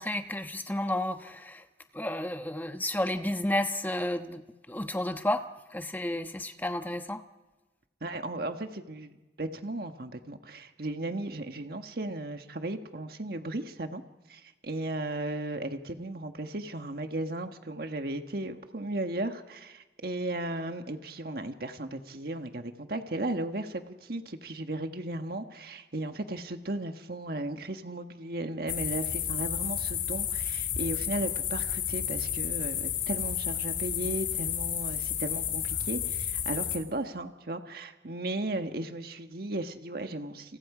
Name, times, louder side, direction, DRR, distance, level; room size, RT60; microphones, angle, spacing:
voice 1, 0.0-1.6 1.9-4.4 4.7-5.4 5.7-7.2, left 1 dB, 10° left, 7 dB, 1.1 m, -31 dB
voice 2, 8.0-9.1 9.4-14.0 14.3-40.6, right 1 dB, 60° right, 6 dB, 1.5 m, -35 dB
sound 1, 28.7-36.8, left 9 dB, 85° left, 4.0 m, -31 dB
30.0 x 28.0 x 5.0 m, 1.1 s
head